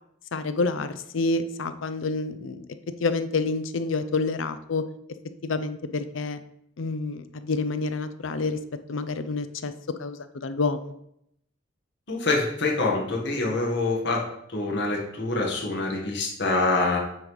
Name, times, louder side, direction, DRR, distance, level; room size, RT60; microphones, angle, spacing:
voice 1, 0.3-2.7 3.0-4.8 5.4-6.4 6.8-8.6 8.9-9.7 10.0-10.9, left 3 dB, 75° left, 11 dB, 0.5 m, -28 dB
voice 2, 12.1-14.2 14.5-17.0, left 3 dB, 55° left, -2 dB, 1.3 m, -25 dB
8.7 x 3.1 x 5.3 m, 0.75 s
head